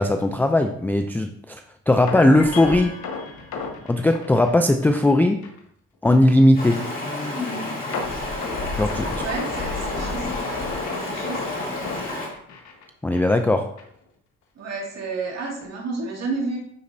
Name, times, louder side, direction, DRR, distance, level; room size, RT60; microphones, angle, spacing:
voice 1, 0.0-1.6 1.9-3.0 3.9-5.5 6.0-6.9 8.8-9.2 13.0-13.7, left 1 dB, 5° left, 6 dB, 0.3 m, -18 dB
sound 1, 2.1-5.1 5.4-5.6 6.1-6.2 7.9-12.8 13.1-13.3 13.8-13.9, left 4 dB, 70° left, 1.3 m, -32 dB
sound 2, 2.1-3.9, left 2 dB, 50° left, 2.1 m, -35 dB
Stream, 6.5-12.3, left 2 dB, 30° left, 2.6 m, -30 dB
voice 2, 9.2-10.4 11.0-11.7 14.6-16.6, right 3 dB, 60° right, -3 dB, 2.2 m, -31 dB
9.5 x 4.0 x 2.6 m, 0.70 s
cardioid pair, 90°, 30 cm